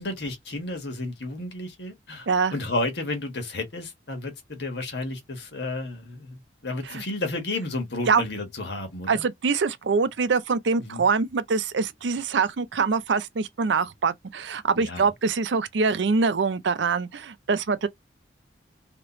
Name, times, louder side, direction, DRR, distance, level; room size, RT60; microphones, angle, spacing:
voice 1, 0.0-9.2 10.8-11.1 14.8-15.1, left 2 dB, 65° left, 1.3 m, -32 dB
voice 2, 9.1-17.9, right 4 dB, 75° right, 0.5 m, -24 dB
3.1 x 2.9 x 2.9 m
head